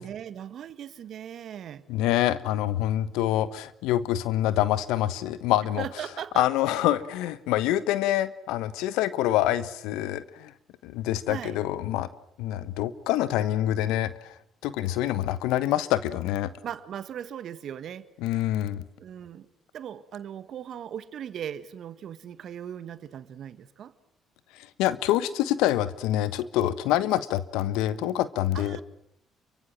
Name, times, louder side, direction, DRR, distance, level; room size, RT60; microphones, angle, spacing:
voice 1, 0.0-1.8 5.8-6.5 11.3-11.6 16.6-18.1 19.0-19.5 19.7-23.9 28.5-28.8, right 9 dB, 60° right, 13 dB, 1.6 m, -38 dB
voice 2, 1.9-5.8 6.3-10.5 10.8-12.1 12.4-14.3 14.6-16.5 18.2-18.8 24.8-28.8, left 13 dB, 75° left, 15 dB, 1.2 m, -26 dB
29.0 x 24.0 x 7.7 m, 0.73 s
hypercardioid pair, 50°, 0 cm